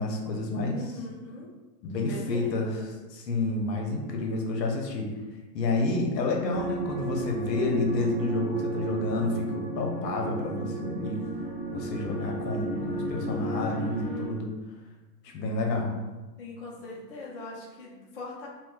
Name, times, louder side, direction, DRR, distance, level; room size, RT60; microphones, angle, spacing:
voice 1, 0.0-0.8 1.8-2.8 3.1-5.1 5.5-11.2 11.7-14.5 15.2-16.0, left 2 dB, 75° left, 1 dB, 0.8 m, -29 dB
voice 2, 0.6-1.5 2.1-2.9 16.4-18.5, left 2 dB, 35° left, -6 dB, 0.5 m, -41 dB
sound 1, 6.5-14.3, right 2 dB, 25° right, 0.7 m, -33 dB
3.9 x 2.2 x 2.2 m, 1.2 s
hypercardioid pair, 170°, 50 cm